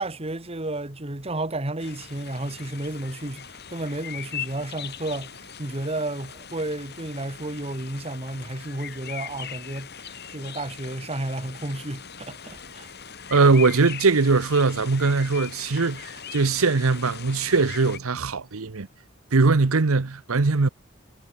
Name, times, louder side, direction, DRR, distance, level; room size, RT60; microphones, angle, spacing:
voice 1, 0.0-5.3 5.6-12.9, right 2 dB, 30° right, 1.7 m, -32 dB
sound 1, 1.8-18.0, left 8 dB, 50° left, 6.1 m, -40 dB
voice 2, 13.3-18.9 19.3-20.7, right 4 dB, 80° right, 0.9 m, -21 dB
head